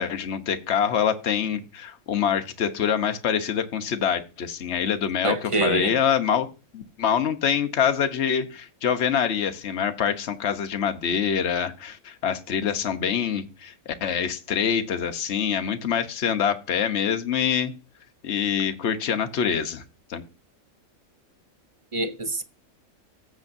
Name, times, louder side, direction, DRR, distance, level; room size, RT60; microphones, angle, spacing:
voice 1, 0.0-6.5 6.7-17.7 18.2-19.8 20.1-20.2, left 8 dB, 50° left, 1.2 m, -25 dB
voice 2, 5.2-5.9 21.9-22.4, right 2 dB, 35° right, 0.5 m, -25 dB
14.5 x 7.5 x 2.7 m
omnidirectional pair, 1.5 m